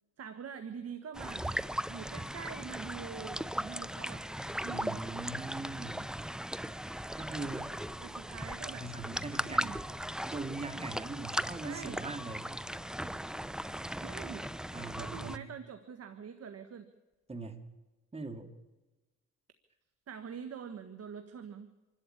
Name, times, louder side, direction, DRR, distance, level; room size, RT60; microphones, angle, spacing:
voice 1, 0.2-1.5 1.9-4.3 4.6-5.0 8.0-8.9 9.4-9.8 11.5-12.0 13.9-14.5 15.0-16.9 20.1-21.7, right 7 dB, 55° right, 9 dB, 1.6 m, -44 dB
sound 1, 1.1-15.4, equal, ahead, 0.6 m, -38 dB
voice 2, 4.7-6.0 7.1-7.7 8.7-9.8 10.3-12.5 14.7-15.4 17.3-17.6 18.1-18.5, right 3 dB, 20° right, 6 dB, 2.4 m, -41 dB
26.5 x 12.5 x 8.8 m, 1.1 s
cardioid pair, 90°, 30 cm